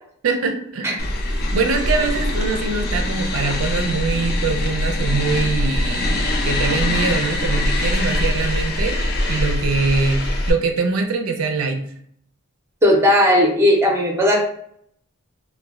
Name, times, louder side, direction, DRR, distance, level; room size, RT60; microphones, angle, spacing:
voice 1, 0.2-0.9 1.5-9.0 9.3-11.8, right 4 dB, 70° right, 4 dB, 0.4 m, -23 dB
sound 1, 1.0-10.5, left 1 dB, 45° left, 0.4 m, -22 dB
voice 2, 12.8-14.4, left 1 dB, 10° right, -1 dB, 0.5 m, -16 dB
2.2 x 2.1 x 3.5 m, 0.66 s
head